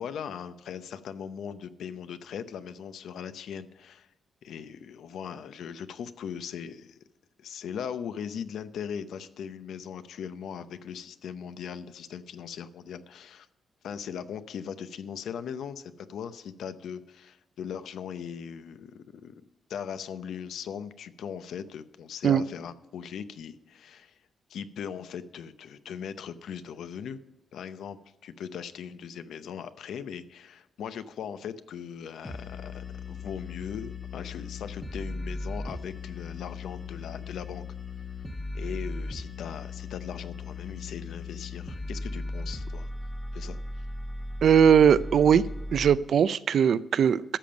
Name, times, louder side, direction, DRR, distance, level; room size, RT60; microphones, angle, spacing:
voice 1, 0.0-4.1 4.4-7.0 7.4-13.5 13.8-19.4 19.7-24.2 24.5-27.2 27.5-37.6 38.5-42.9 43.3-43.6, left 7 dB, 80° left, 12 dB, 0.7 m, -39 dB
sound 1, 32.2-46.0, left 2 dB, 20° left, 0.9 m, -37 dB
voice 2, 44.4-45.4 45.7-47.4, right 8 dB, 60° right, 17 dB, 0.4 m, -20 dB
13.0 x 7.0 x 5.1 m, 1.0 s
cardioid pair, 135°, 0 cm